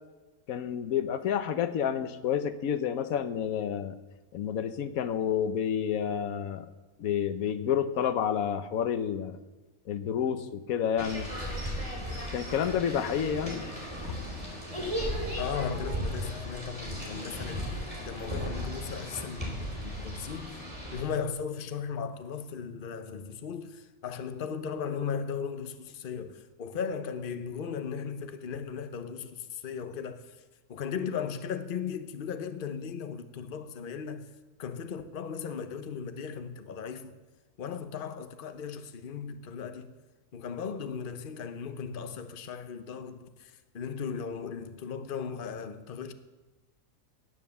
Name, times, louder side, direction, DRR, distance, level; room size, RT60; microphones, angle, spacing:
voice 1, 0.5-3.9 4.3-6.7 7.0-9.4 9.9-11.3 12.3-13.6 14.0-14.2, left 8 dB, 85° left, 1.2 m, -29 dB
sound 1, 11.0-21.0, equal, 25° right, 3.5 m, -36 dB
voice 2, 15.4-30.4 30.7-34.3 34.6-37.2 37.6-39.9 40.3-46.1, left 6 dB, 45° left, 0.9 m, -37 dB
18.0 x 7.4 x 7.0 m
omnidirectional pair, 1.4 m